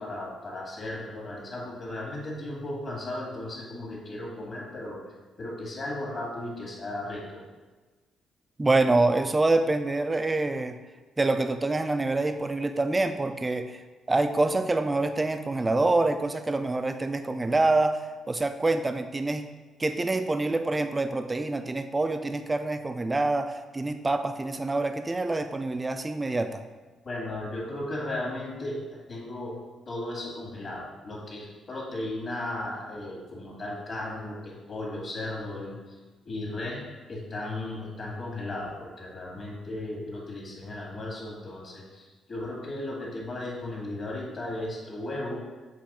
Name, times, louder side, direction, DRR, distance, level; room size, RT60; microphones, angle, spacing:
voice 1, 0.0-7.4 27.0-36.0 36.2-45.5, left 1 dB, 45° left, -2 dB, 1.9 m, -36 dB
voice 2, 8.6-10.8 11.2-13.8 14.1-19.5 19.8-26.6, right 2 dB, 20° right, 9 dB, 0.4 m, -26 dB
7.5 x 3.1 x 4.2 m, 1.3 s
cardioid pair, 90°, 0 cm